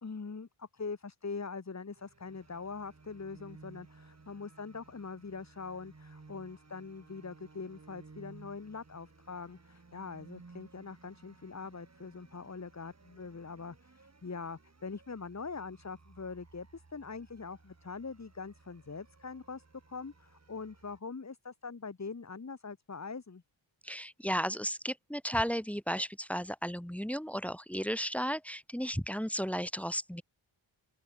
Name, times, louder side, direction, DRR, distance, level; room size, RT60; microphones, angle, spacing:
voice 1, 0.0-19.6 19.9-23.4, left 4 dB, 35° left, 2.6 m, -43 dB
sound 1, 2.0-21.0, right 3 dB, 30° right, 6.0 m, -58 dB
voice 2, 23.8-30.2, equal, 5° left, 2.5 m, -34 dB
open air
wide cardioid pair, 145°, 49 cm